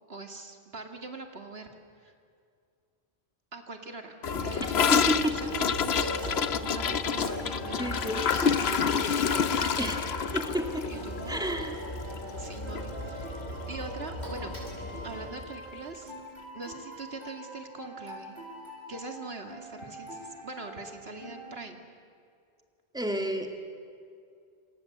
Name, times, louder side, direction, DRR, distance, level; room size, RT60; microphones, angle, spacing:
voice 1, 0.1-1.7 2.0-2.1 3.5-6.1 6.5-10.0 10.9-11.7 12.4-13.4 13.7-14.5 15.0-16.1 16.5-18.4 18.9-21.9, right 3 dB, 75° right, 4 dB, 2.5 m, -42 dB
Gurgling / Toilet flush, 4.2-12.5 12.7-12.9 13.2-13.6 13.9-14.0 14.3-14.4 15.3-15.4, left 7 dB, 80° left, 1.1 m, -28 dB
sound 1, 4.2-15.3, left 1 dB, 45° left, 7.0 m, -38 dB
voice 2, 4.9-5.3 7.8-8.2 9.8-10.0 10.3-10.9 11.3-11.8 22.9-23.5, equal, 5° right, 3 dB, 2.5 m, -30 dB
sound 2, 5.3-21.5, right 1 dB, 25° left, 7.6 m, -45 dB
28.0 x 26.0 x 7.9 m, 2.3 s
omnidirectional pair, 1.1 m